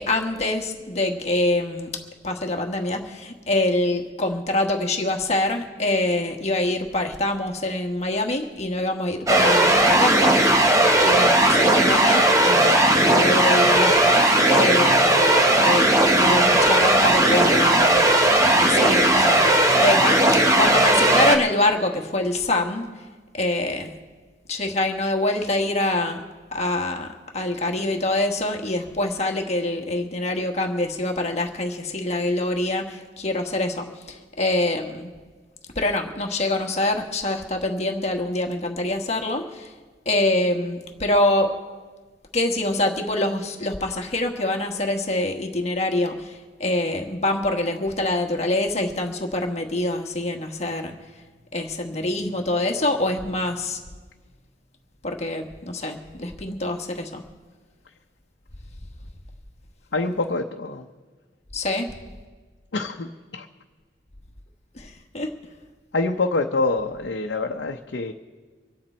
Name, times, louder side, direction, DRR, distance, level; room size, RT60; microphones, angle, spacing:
voice 1, 0.0-1.9 2.2-15.2 15.5-18.0 18.5-20.2 20.5-22.9 23.3-23.9 24.5-26.2 26.5-35.1 35.7-39.7 40.0-41.5 42.3-50.9 51.5-53.8 55.0-57.2 61.5-61.9 64.7-65.3, left 2 dB, 40° left, 3 dB, 1.3 m, -25 dB
sound 1, 9.3-21.4, right 1 dB, 20° right, 1.1 m, -17 dB
voice 2, 59.9-60.9 62.7-63.5 65.9-68.1, left 3 dB, 80° left, 2 dB, 0.8 m, -26 dB
25.5 x 8.8 x 4.4 m, 1.4 s
head